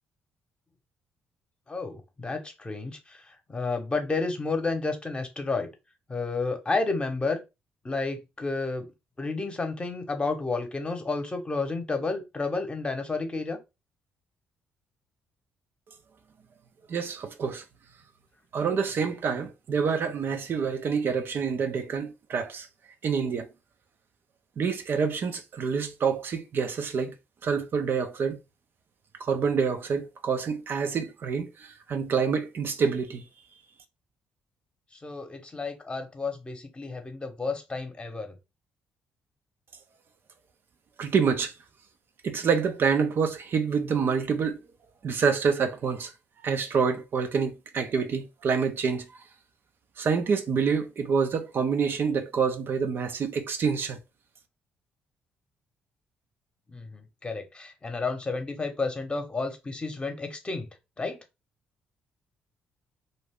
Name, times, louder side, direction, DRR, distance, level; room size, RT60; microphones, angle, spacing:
voice 1, 1.7-3.2 3.5-5.7 6.1-7.4 7.8-8.9 9.2-13.6 35.0-38.4 56.7-60.7 61.0-61.2, left 3 dB, 25° left, 0.9 m, -31 dB
voice 2, 16.9-17.6 18.5-22.7 23.0-23.5 24.6-27.1 27.4-28.4 29.2-33.2 41.0-41.5 42.2-44.6 45.0-46.1 46.4-49.1 50.0-54.0, right 6 dB, 55° right, 0.5 m, -27 dB
2.6 x 2.3 x 3.4 m
supercardioid pair, 65°, 4 cm